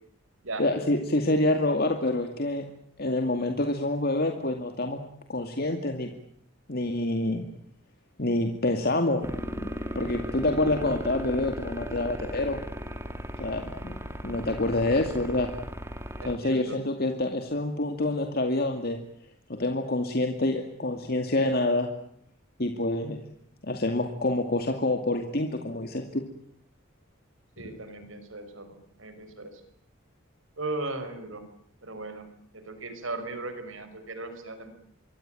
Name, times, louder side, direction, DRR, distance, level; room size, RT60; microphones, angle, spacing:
voice 1, 0.6-2.6 3.0-5.0 5.3-6.1 6.7-7.4 8.2-9.2 9.6-9.7 10.0-12.6 13.4-14.0 14.2-15.5 16.2-19.0 19.5-21.9 22.6-23.2 23.6-26.2, left 2 dB, 50° left, 5 dB, 2.3 m, -27 dB
sound 1, 9.2-16.4, equal, 15° right, 2.7 m, -36 dB
voice 2, 16.2-16.8 27.6-29.6 30.6-31.4 31.8-32.3 32.5-34.7, right 2 dB, 80° right, 9 dB, 5.8 m, -37 dB
26.5 x 23.5 x 9.1 m, 0.67 s
head